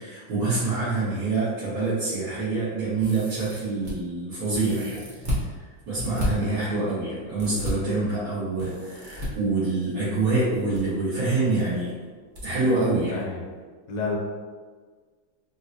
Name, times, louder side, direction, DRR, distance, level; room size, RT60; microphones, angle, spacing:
voice 1, 0.0-5.5 5.9-11.9 12.4-13.2, right 3 dB, 80° right, -13 dB, 2.0 m, -26 dB
sound 1, 3.0-3.9 4.5-5.4 6.0-6.3 7.4-7.7 8.6-9.3 10.4-10.8 11.1-11.2 12.3-12.4 12.8-12.9, left 1 dB, 65° right, 0.4 m, -32 dB
voice 2, 13.1-13.4 13.9-14.2, left 4 dB, 70° left, -1 dB, 1.2 m, -29 dB
4.5 x 2.1 x 2.6 m, 1.5 s
omnidirectional pair, 2.2 m